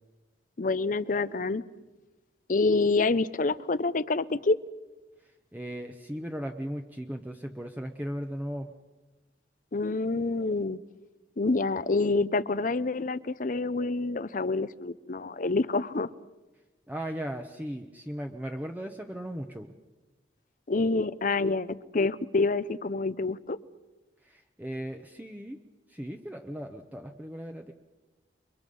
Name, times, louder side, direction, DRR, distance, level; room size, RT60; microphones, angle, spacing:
voice 1, 0.6-1.6 2.5-4.6 9.7-10.8 11.4-16.1 20.7-23.6, left 3 dB, 50° left, 16 dB, 0.7 m, -27 dB
voice 2, 5.5-8.7 16.9-19.7 24.2-25.6 25.9-27.7, equal, 10° right, 3 dB, 0.9 m, -37 dB
29.5 x 23.5 x 5.5 m, 1.2 s
head